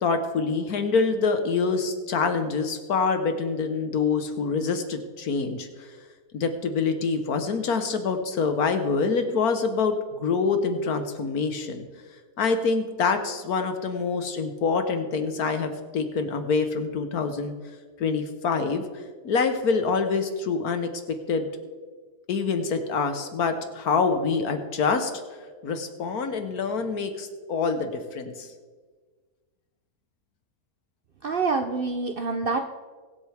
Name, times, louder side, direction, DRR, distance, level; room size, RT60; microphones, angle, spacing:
voice 1, 0.0-5.7 6.3-11.8 12.4-17.5 18.0-18.8 19.2-20.9 21.3-21.5 22.3-25.1 25.6-28.5, left 4 dB, 75° left, 7 dB, 1.6 m, -26 dB
voice 2, 31.2-32.6, right 4 dB, 60° right, 6 dB, 0.6 m, -26 dB
23.0 x 8.0 x 3.5 m, 1.5 s
omnidirectional pair, 1.6 m